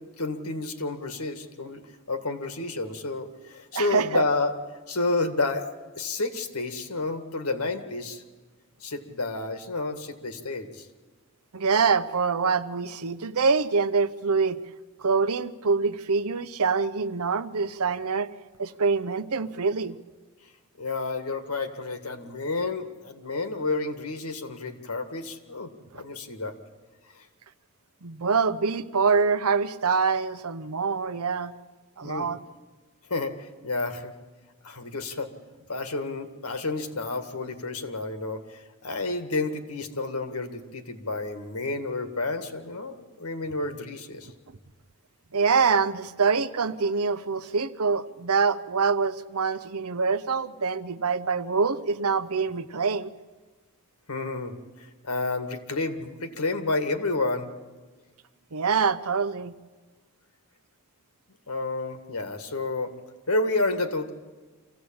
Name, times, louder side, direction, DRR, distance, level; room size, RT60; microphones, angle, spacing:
voice 1, 0.0-4.5 4.9-5.7 5.9-8.2 8.8-10.9 20.8-26.6 27.2-27.3 32.0-32.3 33.1-34.1 34.6-35.3 35.7-44.3 54.1-57.5 61.5-62.9 63.3-64.1, left 3 dB, 90° left, 8 dB, 1.9 m, -30 dB
voice 2, 3.7-4.2 11.5-14.6 15.0-18.3 18.6-20.0 25.9-26.0 28.0-31.5 32.0-32.4 45.3-53.1 58.5-59.5, right 5 dB, 80° right, 13 dB, 0.9 m, -25 dB
25.5 x 16.0 x 8.8 m, 1.4 s
head